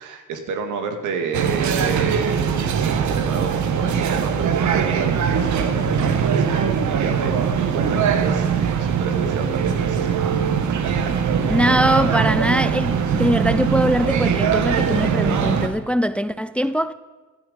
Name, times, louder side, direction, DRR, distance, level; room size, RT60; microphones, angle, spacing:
voice 1, 0.0-6.4 6.9-10.1 10.7-11.2 11.5-11.7, right 5 dB, 85° right, 2.1 m, -30 dB
sound 1, 1.3-15.7, right 7 dB, 70° right, 1.5 m, -21 dB
voice 2, 11.5-16.9, equal, 5° left, 0.5 m, -21 dB
16.0 x 10.5 x 5.3 m
cardioid pair, 90°, 30 cm